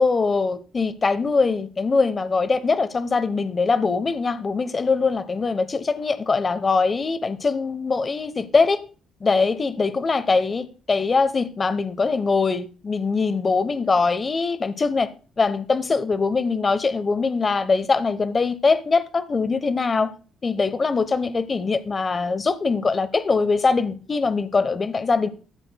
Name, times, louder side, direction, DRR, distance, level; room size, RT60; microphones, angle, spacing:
voice 1, 0.0-8.8 9.2-15.1 15.4-20.1 20.4-25.3, left 4 dB, 35° left, 1.0 m, -22 dB
14.5 x 7.6 x 2.3 m
cardioid pair, 90°, 0 cm